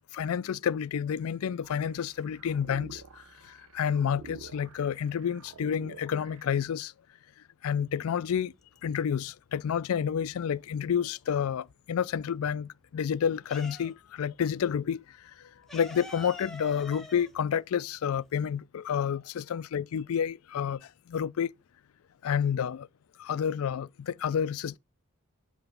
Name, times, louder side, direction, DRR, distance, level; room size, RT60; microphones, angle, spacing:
voice 1, 0.1-6.9 7.6-8.5 8.8-21.5 22.2-22.9 23.2-24.8, left 8 dB, 75° left, 0.4 m, -30 dB
sound 1, 1.6-6.6, right 5 dB, 75° right, 0.8 m, -50 dB
sound 2, 8.4-9.2 9.5-11.5 11.9-14.3 14.5-14.7 14.9-18.5, left 2 dB, ahead, 0.9 m, -47 dB
7.9 x 2.9 x 5.7 m
head